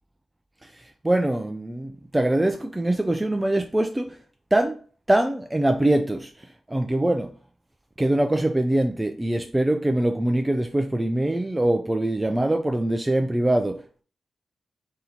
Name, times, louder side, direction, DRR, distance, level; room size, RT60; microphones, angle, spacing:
voice 1, 0.6-4.2 4.5-4.8 5.1-7.3 8.0-14.0, right 1 dB, 10° right, 0.3 m, -23 dB
3.8 x 2.8 x 4.2 m
wide cardioid pair, 150°, 0 cm